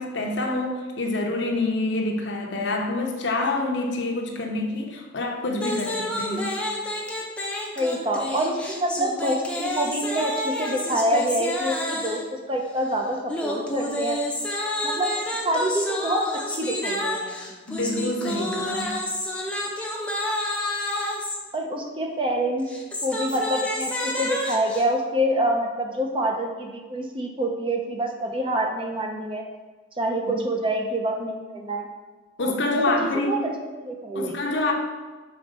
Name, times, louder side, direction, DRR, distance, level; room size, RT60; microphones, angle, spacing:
voice 1, 0.0-6.5 7.5-7.6 17.7-19.0 32.4-33.4 34.1-34.7, left 2 dB, 65° left, 1 dB, 0.9 m, -27 dB
sound 1, 5.6-12.3 13.3-21.4 22.6-24.8, left 1 dB, 5° left, 0.8 m, -29 dB
voice 2, 7.8-14.2 14.8-15.1 15.4-17.6 21.5-22.7 23.0-29.4 30.0-31.9 32.4-33.5 33.8-34.4, right 1 dB, 25° right, 2 dB, 0.7 m, -26 dB
5.2 x 4.1 x 5.2 m, 1.3 s
head